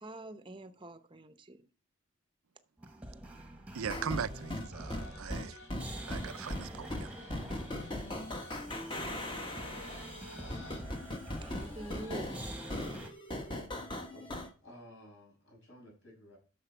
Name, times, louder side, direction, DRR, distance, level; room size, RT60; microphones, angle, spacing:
voice 1, 0.0-1.7 11.4-12.3, right 2 dB, 25° right, 0.7 m, -46 dB
sound 1, 2.8-13.1, right 1 dB, 5° right, 1.2 m, -46 dB
voice 2, 3.7-5.6 6.1-7.1, right 7 dB, 85° right, 0.5 m, -39 dB
sound 2, 3.9-14.5, left 1 dB, 20° left, 1.2 m, -39 dB
sound 3, 4.3-13.0, left 2 dB, 75° left, 3.0 m, -55 dB
voice 3, 13.8-16.4, left 1 dB, 60° left, 6.5 m, -55 dB
10.0 x 6.8 x 4.5 m
head